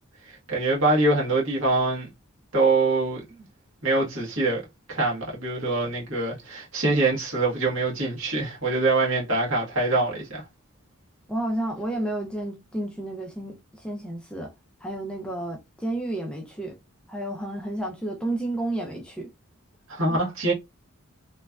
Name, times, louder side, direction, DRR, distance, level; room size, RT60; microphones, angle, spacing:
voice 1, 0.2-2.1 2.5-3.2 3.8-4.6 4.9-10.4 19.9-20.5, right 2 dB, 65° right, 1.3 m, -24 dB
voice 2, 11.3-14.5 14.8-16.8 17.1-19.3 20.1-20.2, right 1 dB, 5° left, 0.4 m, -31 dB
3.0 x 2.4 x 2.2 m
head